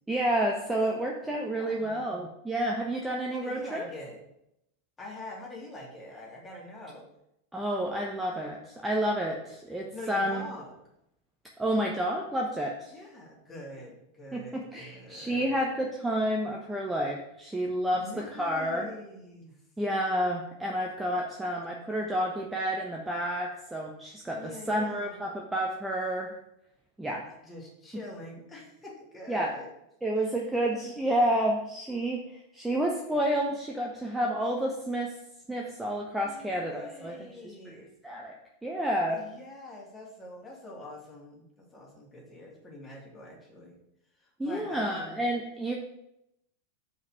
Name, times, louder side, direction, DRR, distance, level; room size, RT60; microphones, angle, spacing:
voice 1, 0.1-3.9 7.5-10.4 11.6-12.9 14.3-18.9 19.8-26.3 27.0-27.2 29.3-29.5 30.0-35.1 35.5-37.3 37.7-37.8 38.0-38.3 38.6-39.2 44.4-45.7, right 1 dB, 5° right, 0 dB, 1.0 m, -30 dB
voice 2, 0.6-2.2 3.3-4.2 5.0-7.1 9.9-10.7 12.9-15.6 17.9-19.6 24.3-25.2 27.3-29.7 30.2-30.4 30.7-31.1 36.2-37.9 39.1-43.8 44.2-45.2, left 2 dB, 15° left, -3 dB, 2.8 m, -45 dB
5.3 x 5.3 x 6.4 m, 0.81 s
figure-of-eight pair, 90°, 0 cm